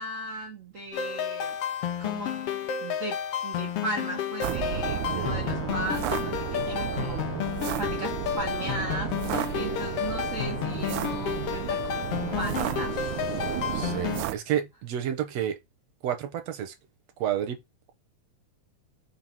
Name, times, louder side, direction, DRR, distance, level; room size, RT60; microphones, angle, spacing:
voice 1, 0.0-1.6 2.0-2.3 2.8-3.2 3.4-7.2 7.8-12.1 12.4-13.6, right 2 dB, 45° right, 1.0 m, -37 dB
sound 1, 0.9-14.2, left 9 dB, 65° left, 1.6 m, -31 dB
sound 2, 4.4-14.4, right 14 dB, 80° right, 2.0 m, -33 dB
voice 2, 4.9-5.4 9.5-9.9 13.3-15.6 16.0-16.8 17.2-17.6, right 10 dB, 65° right, 2.1 m, -31 dB
5.6 x 3.9 x 6.0 m
omnidirectional pair, 3.5 m